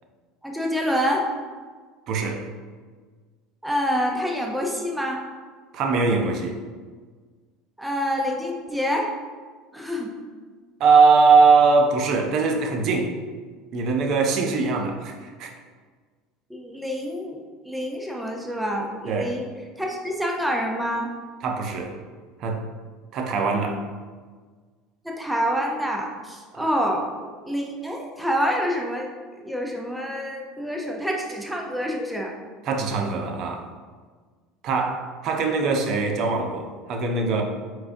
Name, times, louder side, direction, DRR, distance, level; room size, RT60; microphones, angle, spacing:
voice 1, 0.4-1.3 3.6-5.2 7.8-9.1 9.7-10.1 14.6-14.9 16.5-17.4 17.6-19.5 19.8-21.1 25.0-32.3, equal, 5° right, 0 dB, 0.6 m, -27 dB
voice 2, 2.1-2.4 5.7-6.6 10.8-13.1 13.7-15.5 19.1-19.3 21.4-21.9 22.4-22.6 23.1-23.8 26.5-26.6 32.6-33.7 34.6-37.4, right 4 dB, 50° right, 3 dB, 0.6 m, -21 dB
4.6 x 3.9 x 2.6 m, 1.5 s
supercardioid pair, 120°, 0 cm